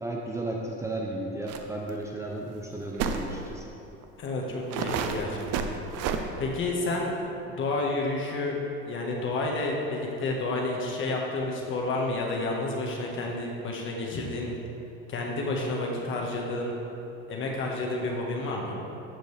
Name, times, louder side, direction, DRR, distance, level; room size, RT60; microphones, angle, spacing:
voice 1, 0.0-3.7, right 2 dB, 10° right, -2 dB, 0.6 m, -34 dB
sound 1, 1.5-1.6 1.9-2.0 3.0-3.3 4.0-4.1 4.7-6.2, right 7 dB, 55° right, 0.7 m, -30 dB
voice 2, 4.2-5.7 6.4-8.6 8.8-14.5 15.1-16.7 17.3-18.8, left 2 dB, 40° left, -1 dB, 1.5 m, -30 dB
14.0 x 5.2 x 3.4 m, 2.9 s
cardioid pair, 135°, 29 cm